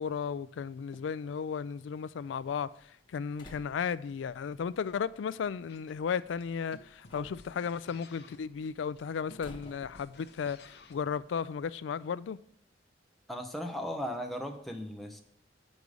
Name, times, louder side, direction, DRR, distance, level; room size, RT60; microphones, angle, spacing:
voice 1, 0.0-12.4, left 6 dB, 85° left, 0.3 m, -35 dB
Slam, 2.3-11.8, left 1 dB, 25° left, 1.2 m, -58 dB
sound 1, 5.7-11.1, left 3 dB, 60° left, 0.7 m, -56 dB
voice 2, 13.3-15.2, equal, ahead, 0.7 m, -37 dB
8.0 x 5.4 x 4.8 m
head